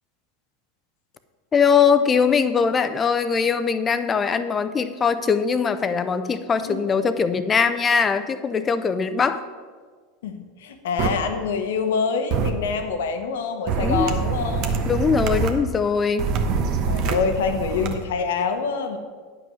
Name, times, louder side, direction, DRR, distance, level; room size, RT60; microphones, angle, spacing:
voice 1, 1.5-9.4 13.8-14.1 14.9-16.3, left 6 dB, 25° left, 11 dB, 0.7 m, -21 dB
voice 2, 10.2-14.9 16.9-19.0, left 5 dB, 75° left, 7 dB, 1.1 m, -26 dB
sound 1, 11.0-11.1 12.3-12.5 13.7-15.5 16.2-17.9, right 5 dB, 55° right, 1.1 m, -24 dB
9.4 x 5.9 x 6.3 m, 1.5 s
hypercardioid pair, 95°, 0 cm